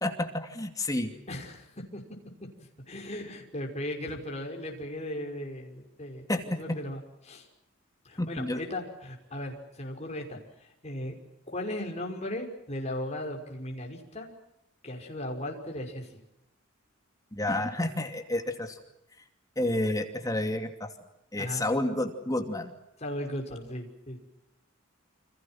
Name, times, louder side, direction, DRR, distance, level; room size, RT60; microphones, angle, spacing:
voice 1, 0.0-1.1 6.3-6.6 8.2-8.6 17.3-18.8 19.6-20.9 21.3-22.7, left 1 dB, 15° left, 5 dB, 2.7 m, -30 dB
voice 2, 1.3-2.0 2.9-7.5 8.0-11.1 11.5-14.3 14.8-16.1 21.4-21.6 23.0-24.2, left 1 dB, 35° left, 1 dB, 5.8 m, -37 dB
29.5 x 27.0 x 6.1 m, 0.84 s
head